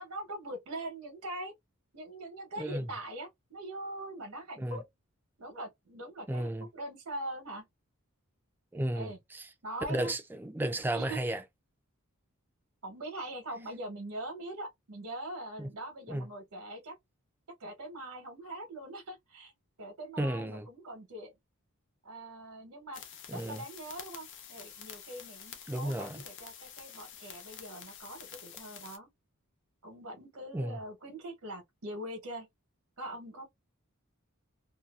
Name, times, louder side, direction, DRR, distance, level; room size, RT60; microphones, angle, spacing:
voice 1, 0.0-1.5 1.9-4.8 5.4-7.6 8.9-9.2 9.6-10.1 10.9-11.3 12.8-16.9 17.6-19.5 19.8-21.3 22.0-23.0 23.3-29.1 29.8-32.5 33.0-33.4, right 1 dB, 80° right, 1.0 m, -42 dB
voice 2, 2.6-2.9 4.6-4.8 6.3-6.7 8.7-9.5 9.9-11.4 15.6-15.7 16.1-16.3 20.2-20.7 23.3-23.6 25.7-26.2 30.5-30.8, right 1 dB, 10° right, 0.3 m, -33 dB
sound 1, 22.9-29.0, left 8 dB, 60° left, 0.6 m, -48 dB
2.6 x 2.3 x 2.3 m
head